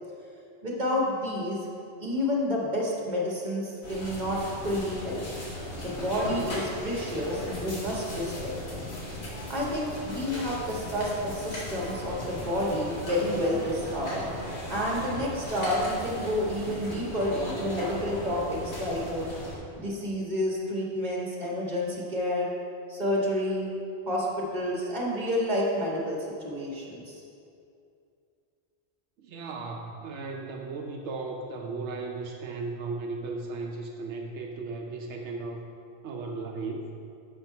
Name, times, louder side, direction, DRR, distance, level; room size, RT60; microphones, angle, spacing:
voice 1, 0.6-1.6 2.0-5.2 5.8-8.8 9.5-14.2 14.7-19.3 19.8-22.5 22.9-23.7 24.1-27.2, left 1 dB, 40° right, -4 dB, 1.6 m, -29 dB
sound 1, 3.8-19.6, left 1 dB, 85° left, 1.8 m, -37 dB
voice 2, 29.2-35.6 36.0-36.9, right 3 dB, 90° right, 1 dB, 1.0 m, -36 dB
7.7 x 4.4 x 5.5 m, 2.5 s
omnidirectional pair, 1.1 m